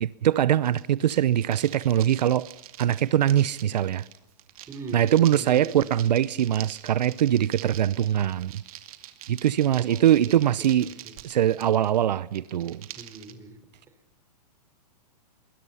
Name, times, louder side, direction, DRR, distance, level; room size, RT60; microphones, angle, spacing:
voice 1, 0.0-2.5 2.8-4.0 4.9-8.6 9.3-10.9 11.2-12.9, right 11 dB, 85° right, 0.8 m, -22 dB
sound 1, 0.6-13.3, right 12 dB, 60° right, 2.4 m, -45 dB
voice 2, 4.7-5.9 9.8-11.1 13.0-13.6, right 3 dB, 15° right, 4.0 m, -41 dB
27.0 x 21.5 x 5.7 m
hypercardioid pair, 150°, 21 cm